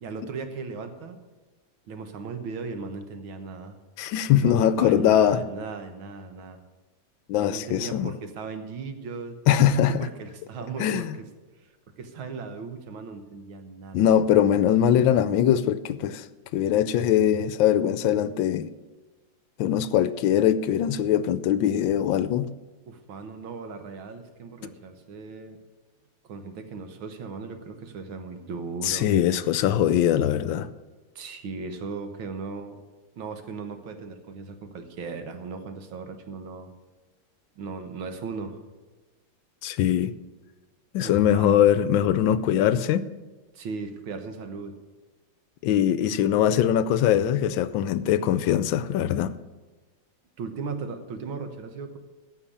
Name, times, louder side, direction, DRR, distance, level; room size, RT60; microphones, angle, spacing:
voice 1, 0.0-1.2 1.9-3.8 4.3-6.6 7.4-9.4 9.7-11.3 11.6-14.2 22.9-25.6 26.2-29.1 31.2-32.8 33.2-36.7 37.6-38.6 41.0-41.6 43.5-44.8 50.4-52.0, right 4 dB, 80° right, 7 dB, 2.0 m, -37 dB
voice 2, 4.0-5.4 7.3-8.1 9.5-10.1 10.8-11.1 13.9-16.2 16.5-18.7 19.6-22.5 28.8-30.7 39.6-40.1 40.9-43.1 45.6-49.3, left 10 dB, 80° left, 14 dB, 1.3 m, -22 dB
14.5 x 5.8 x 8.6 m, 1.2 s
omnidirectional pair, 2.2 m